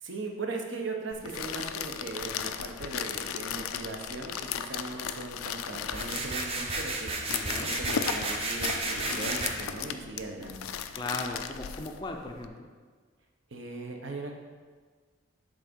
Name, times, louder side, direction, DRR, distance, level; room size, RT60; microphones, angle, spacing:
voice 1, 0.0-7.1 7.6-10.7 13.5-14.3, right 3 dB, 60° right, 2 dB, 0.9 m, -39 dB
sound 1, 1.1-12.5, left 8 dB, 80° left, 0.4 m, -36 dB
sound 2, 5.9-9.5, right 2 dB, 30° right, 0.7 m, -32 dB
voice 2, 7.3-7.7 10.9-12.7, left 2 dB, 20° left, 2 dB, 0.5 m, -37 dB
7.3 x 3.8 x 5.2 m, 1.5 s
head